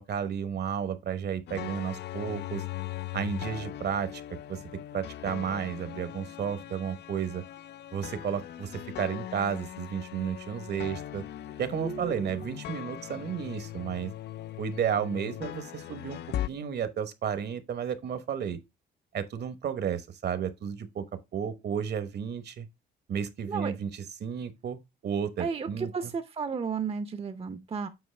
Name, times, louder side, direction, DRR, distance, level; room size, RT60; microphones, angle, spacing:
voice 1, 0.0-2.6 3.1-4.6 4.9-7.4 7.9-11.2 11.6-14.1 14.6-16.2 16.5-18.6 19.1-21.0 21.3-22.7 23.1-24.8 25.0-25.9, right 8 dB, 55° right, 1.0 m, -32 dB
sound 1, 1.5-16.5, left 12 dB, 60° left, 0.4 m, -39 dB
voice 2, 11.8-12.6 23.5-23.7 25.4-27.9, right 5 dB, 30° right, 0.7 m, -34 dB
8.0 x 4.5 x 3.3 m
cardioid pair, 90°, 20 cm